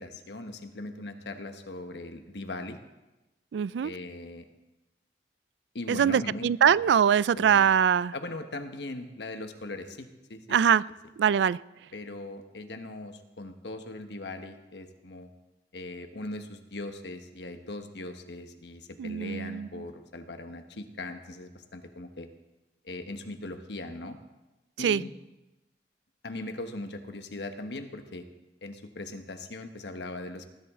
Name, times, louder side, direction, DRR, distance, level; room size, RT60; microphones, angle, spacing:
voice 1, 0.0-2.8 3.8-4.4 5.7-6.8 7.4-7.7 8.1-10.6 11.9-15.3 15.7-22.3 22.8-24.2 24.8-25.1 26.2-28.2 28.6-30.4, left 2 dB, 80° left, 1.2 m, -39 dB
voice 2, 3.5-3.9 5.9-8.1 10.5-10.8 11.2-11.6 19.0-19.8 24.8-25.0, right 8 dB, 85° right, 0.3 m, -23 dB
19.0 x 11.0 x 3.7 m
head